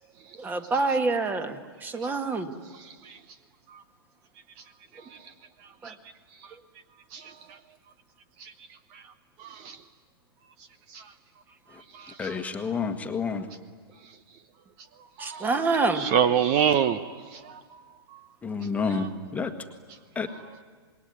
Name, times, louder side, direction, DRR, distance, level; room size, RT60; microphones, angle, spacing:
voice 1, 0.4-2.5 5.8-5.9 15.2-16.1, right 3 dB, 15° right, 8 dB, 1.7 m, -27 dB
voice 2, 9.4-9.8 10.9-11.0 11.9-12.4 15.2-15.5 15.9-17.0 17.3-17.6 18.9-19.1, right 8 dB, 35° right, 13 dB, 0.9 m, -26 dB
voice 3, 12.2-13.5 18.4-19.5 20.1-20.3, left 5 dB, 10° left, 6 dB, 1.5 m, -29 dB
27.0 x 21.0 x 9.7 m, 1.5 s
figure-of-eight pair, 110°, 13 cm